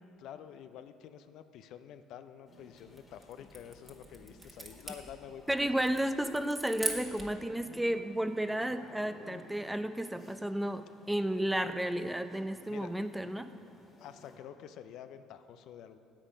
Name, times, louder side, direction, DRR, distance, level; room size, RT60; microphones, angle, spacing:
voice 1, 0.2-6.1 12.7-12.9 14.0-16.0, left 9 dB, 70° left, 10 dB, 0.4 m, -49 dB
sound 1, 2.5-14.4, left 2 dB, 40° left, 1.9 m, -56 dB
sound 2, 2.8-7.4, right 2 dB, 25° right, 1.6 m, -42 dB
voice 2, 5.5-13.5, right 1 dB, 5° right, 10 dB, 0.6 m, -32 dB
8.9 x 8.1 x 5.2 m, 2.6 s
hypercardioid pair, 65°, 0 cm